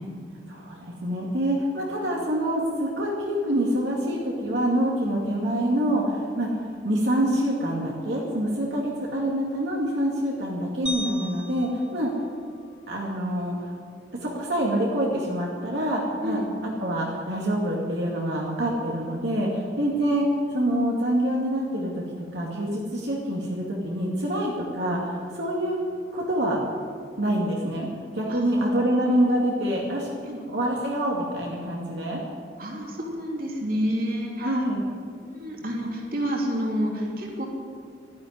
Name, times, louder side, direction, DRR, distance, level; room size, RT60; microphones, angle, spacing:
voice 1, 0.5-12.1 12.9-13.6 14.2-16.4 16.8-20.3 20.5-22.0 22.3-25.8 26.1-26.6 27.2-27.9 28.1-30.1 30.5-32.2 34.4-34.9, right 1 dB, 70° right, -3 dB, 2.3 m, -26 dB
sound 1, 10.9-13.2, equal, 5° right, 1.1 m, -38 dB
voice 2, 28.3-28.7 30.3-30.4 32.6-34.6 35.2-37.5, equal, 50° right, -1 dB, 3.0 m, -29 dB
12.5 x 11.5 x 9.5 m, 2.2 s
head